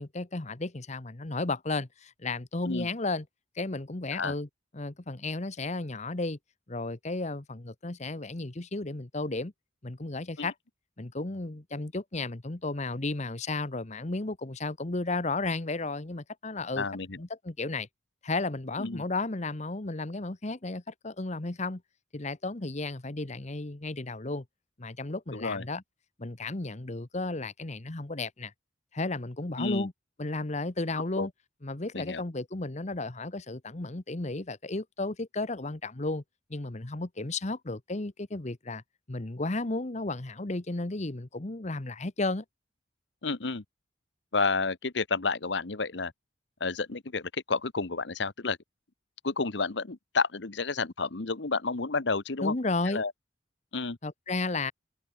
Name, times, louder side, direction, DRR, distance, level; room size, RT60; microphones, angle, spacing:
voice 1, 0.0-3.2 3.5-4.5 4.7-6.4 6.7-9.5 9.8-10.5 11.0-16.9 17.2-17.9 18.2-21.8 22.1-24.4 24.8-25.8 26.2-28.5 28.9-29.9 30.2-31.3 31.6-36.2 36.5-38.8 39.1-42.4 52.4-53.0 54.0-54.7, left 2 dB, 35° left, 1.1 m, -33 dB
voice 2, 16.8-17.2 18.8-19.0 25.3-25.6 29.6-29.9 31.2-31.3 31.9-32.2 43.2-43.6 44.3-46.1 46.6-48.6 49.2-52.5 52.9-53.1 53.7-54.0, left 4 dB, 65° left, 1.1 m, -30 dB
head